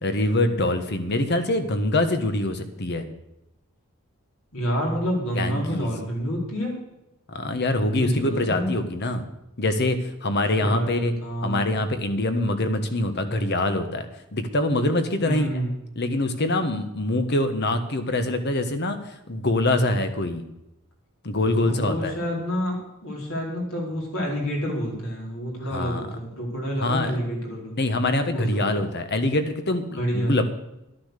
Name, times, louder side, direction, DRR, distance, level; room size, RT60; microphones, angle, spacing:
voice 1, 0.0-3.0 5.3-6.0 7.3-9.2 9.6-11.1 11.4-14.1 14.3-15.5 16.0-20.4 21.2-22.2 25.7-26.0 26.8-27.2 27.8-30.5, left 1 dB, 50° left, 8 dB, 1.3 m, -24 dB
voice 2, 4.5-6.7 7.9-8.7 10.6-11.8 15.2-15.7 21.6-27.7 28.3-28.8 29.9-30.4, equal, 65° left, -1 dB, 4.5 m, -28 dB
12.0 x 10.5 x 6.7 m, 0.90 s
head